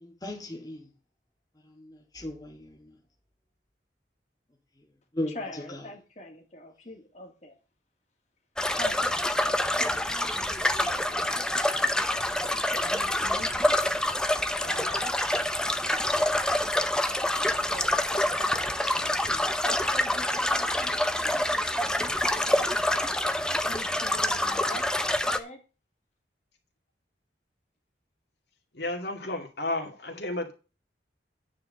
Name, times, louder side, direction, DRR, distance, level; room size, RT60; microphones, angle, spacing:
voice 1, 0.0-0.9 1.8-2.8 5.1-5.4 19.0-19.4, left 1 dB, 20° left, 1.7 m, -36 dB
voice 2, 5.2-7.6 8.7-11.2 12.3-13.5 14.6-15.3 17.4-18.6 19.6-23.1 23.6-25.6, left 2 dB, 40° left, 2.3 m, -44 dB
sound 1, 8.6-25.4, left 1 dB, 5° left, 0.6 m, -26 dB
voice 3, 28.7-30.5, left 2 dB, 65° left, 2.3 m, -32 dB
9.6 x 4.9 x 7.6 m
head